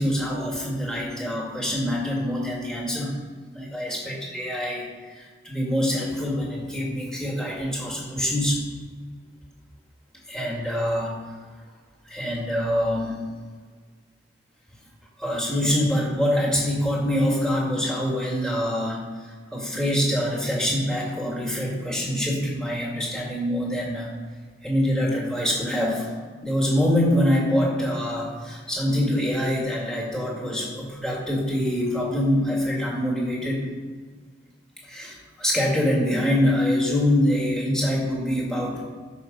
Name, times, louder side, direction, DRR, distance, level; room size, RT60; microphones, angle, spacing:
voice 1, 0.0-3.2 3.5-8.6 10.3-11.2 12.1-13.2 15.2-19.0 19.5-24.1 24.6-26.1 26.4-33.7 34.9-38.8, equal, 5° left, -3 dB, 2.1 m, -25 dB
13.5 x 5.6 x 5.4 m, 1.5 s
head